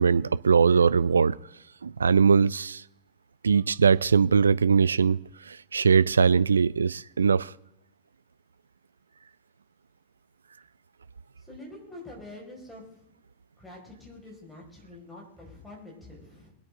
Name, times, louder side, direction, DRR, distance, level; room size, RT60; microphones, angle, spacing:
voice 1, 0.0-1.4 1.8-2.8 3.4-5.2 5.5-7.5, right 6 dB, 75° right, 0.4 m, -21 dB
voice 2, 11.4-13.1 13.6-16.5, left 2 dB, 5° left, 5.5 m, -46 dB
23.0 x 8.7 x 3.8 m
figure-of-eight pair, 90°, 0 cm